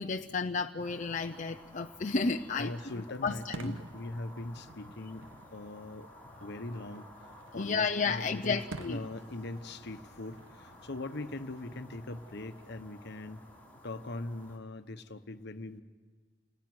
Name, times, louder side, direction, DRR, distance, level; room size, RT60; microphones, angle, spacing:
voice 1, 0.0-2.7 3.2-3.8 7.5-9.0, left 4 dB, 40° left, 4 dB, 0.7 m, -32 dB
sound 1, 0.8-14.6, left 1 dB, 10° left, 3.6 m, -55 dB
voice 2, 2.5-6.1 6.4-7.0 7.5-13.4 13.8-15.8, left 2 dB, 60° left, 10 dB, 1.2 m, -41 dB
Fireworks, 3.1-13.0, right 2 dB, 80° right, 1.2 m, -51 dB
29.5 x 19.5 x 9.6 m, 1.5 s
head